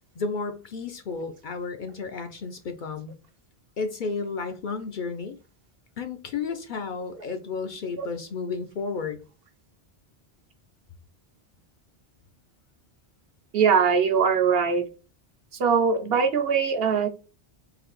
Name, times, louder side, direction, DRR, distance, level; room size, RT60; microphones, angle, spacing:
voice 1, 0.2-3.1 3.8-5.4 6.0-9.2, left 4 dB, 60° left, 0.6 m, -32 dB
voice 2, 13.5-14.8 15.6-17.1, right 6 dB, 65° right, 0.9 m, -21 dB
3.9 x 2.8 x 3.0 m
omnidirectional pair, 1.1 m